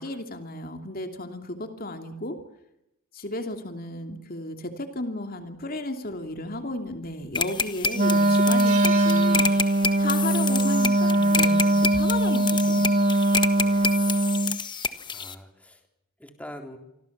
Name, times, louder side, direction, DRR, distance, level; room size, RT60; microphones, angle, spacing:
voice 1, 0.0-2.4 3.1-9.5 10.0-13.0, left 1 dB, 45° left, 6 dB, 2.9 m, -33 dB
sound 1, 6.9-7.4 7.8-7.9 8.3-10.1 10.4-10.6 11.8-12.1, right 8 dB, 90° right, 6.7 m, -40 dB
sound 2, 7.3-15.3, left 4 dB, 20° left, 1.5 m, -29 dB
Wind instrument woodwind instrument, 7.9-14.6, right 1 dB, 35° right, 0.9 m, -21 dB
voice 2, 13.5-14.2 15.1-15.8 16.2-16.8, equal, 5° left, 4 dB, 3.9 m, -44 dB
28.0 x 25.0 x 7.4 m, 0.86 s
head